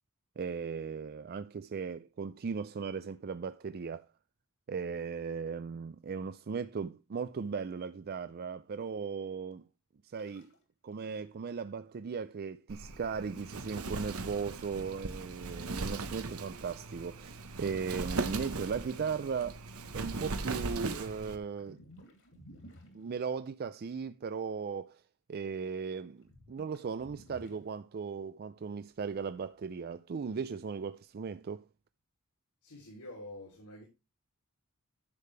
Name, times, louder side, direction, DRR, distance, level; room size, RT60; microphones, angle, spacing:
voice 1, 0.4-4.1 4.7-9.7 10.1-10.5 10.8-19.6 19.9-21.8 22.9-25.0 25.3-31.6, right 5 dB, 45° right, 0.4 m, -37 dB
sound 1, 10.2-10.6 10.9-11.0 11.2-11.3 11.6-11.7 12.9-13.8 15.2-15.7 17.9-18.0 18.8-18.9 19.4-20.0 20.5-23.4 25.6-25.7 26.2-27.7, equal, 60° left, 2.7 m, -56 dB
Wind, 12.7-21.4, right 3 dB, 70° right, 1.0 m, -39 dB
voice 2, 32.6-33.8, left 1 dB, 85° left, 3.2 m, -47 dB
10.5 x 6.7 x 3.3 m
head